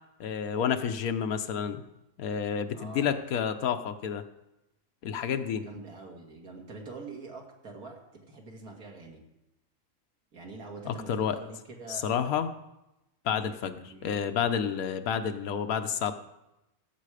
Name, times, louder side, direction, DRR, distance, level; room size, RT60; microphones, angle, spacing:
voice 1, 0.2-1.8 2.2-4.2 5.0-5.6 10.8-11.4 11.9-12.5 13.2-16.2, left 8 dB, 75° left, 7 dB, 1.3 m, -30 dB
voice 2, 2.7-3.2 5.6-9.2 10.3-12.4 13.9-14.1, right 3 dB, 85° right, 0 dB, 2.8 m, -45 dB
16.0 x 7.6 x 5.0 m, 0.93 s
omnidirectional pair, 1.5 m